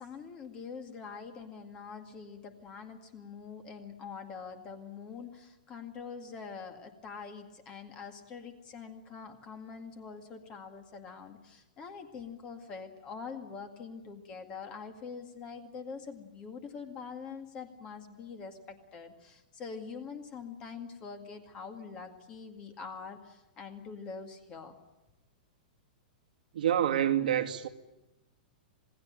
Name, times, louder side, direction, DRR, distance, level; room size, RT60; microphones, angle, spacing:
voice 1, 0.0-24.8, left 5 dB, 20° left, 2.0 m, -44 dB
voice 2, 26.5-27.7, right 10 dB, 70° right, 2.2 m, -27 dB
27.0 x 20.0 x 8.8 m
supercardioid pair, 180°, 5 cm